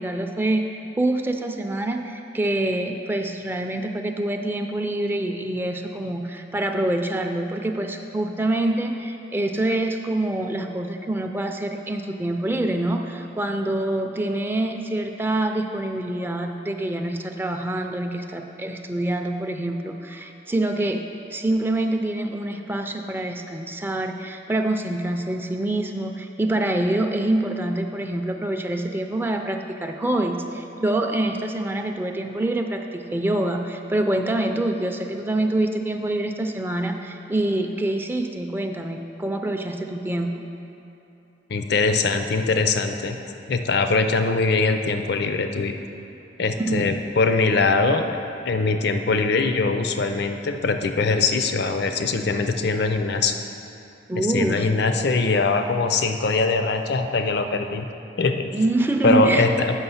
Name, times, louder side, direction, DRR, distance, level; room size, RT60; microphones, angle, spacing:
voice 1, 0.0-40.3 46.6-46.9 54.1-54.7 58.5-59.5, right 1 dB, 10° right, 4 dB, 0.4 m, -26 dB
voice 2, 41.5-43.2 43.5-45.8 46.4-48.1 48.5-53.4 54.2-57.9 58.2-58.5 59.0-59.8, left 3 dB, 65° left, 7 dB, 0.5 m, -22 dB
8.0 x 6.1 x 5.6 m, 2.9 s
head